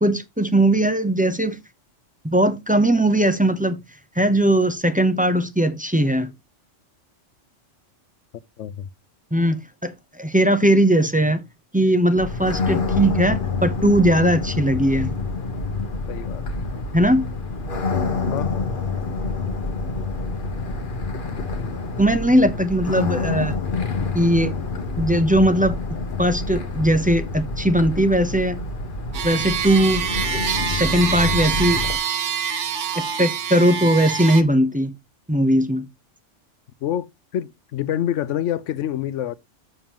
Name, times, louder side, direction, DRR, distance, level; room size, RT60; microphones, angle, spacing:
voice 1, 0.0-1.6 2.2-3.8 4.2-6.3 9.3-11.4 11.7-15.1 16.9-17.3 22.0-23.5 24.1-24.6 25.0-25.8 26.2-28.6 29.2-30.1 30.7-31.8 33.0-34.9 35.3-35.8, right 1 dB, 10° right, 0.6 m, -19 dB
voice 2, 8.6-8.9 12.7-12.8 16.1-16.4 18.3-18.8 36.8-37.1 37.3-39.4, left 11 dB, 80° left, 0.9 m, -27 dB
sound 1, 12.2-32.0, left 3 dB, 45° left, 1.2 m, -27 dB
sound 2, 29.1-34.4, right 7 dB, 70° right, 1.2 m, -26 dB
7.2 x 6.8 x 2.9 m
omnidirectional pair, 1.3 m